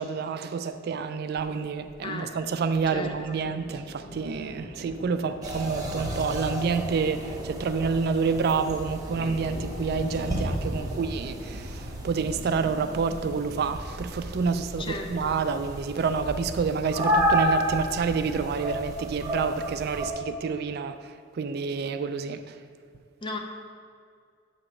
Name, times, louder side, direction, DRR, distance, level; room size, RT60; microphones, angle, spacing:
voice 1, 0.0-22.4, right 5 dB, 55° right, 10 dB, 0.3 m, -28 dB
Thunder, 1.6-13.9, left 1 dB, 65° left, 0.8 m, -44 dB
voice 2, 2.0-2.3 2.9-3.4 14.8-15.4 23.2-23.4, left 2 dB, 25° left, 2 dB, 0.5 m, -35 dB
sound 1, 5.4-20.1, equal, 20° right, 0.9 m, -31 dB
7.4 x 2.9 x 5.9 m, 2.3 s
head